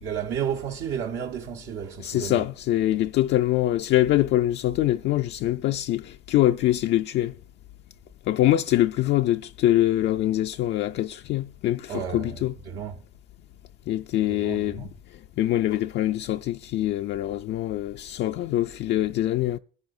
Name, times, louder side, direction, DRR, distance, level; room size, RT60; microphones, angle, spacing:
voice 1, 0.0-2.4 11.9-13.0 14.2-14.9, right 8 dB, 75° right, 1.3 m, -32 dB
voice 2, 2.0-7.4 8.3-12.5 13.9-19.6, left 14 dB, 70° left, 0.4 m, -24 dB
21.5 x 10.5 x 2.7 m
supercardioid pair, 80°, 19 cm